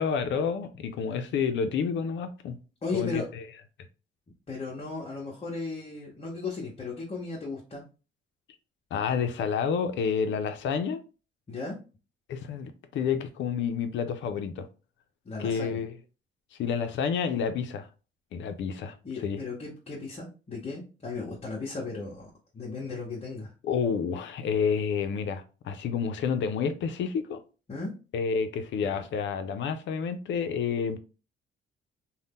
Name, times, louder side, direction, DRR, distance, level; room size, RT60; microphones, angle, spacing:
voice 1, 0.0-2.6 2.9-3.4 8.9-11.0 12.3-14.7 15.4-16.0 16.6-17.9 18.3-18.9 19.2-19.4 23.6-27.4 28.1-31.0, left 6 dB, 70° left, 0.5 m, -29 dB
voice 2, 2.8-3.3 4.5-7.8 11.5-11.8 15.2-15.8 19.0-23.5 27.7-27.9, left 4 dB, 30° left, 0.9 m, -36 dB
2.7 x 2.1 x 3.5 m
cardioid pair, 90°, 20 cm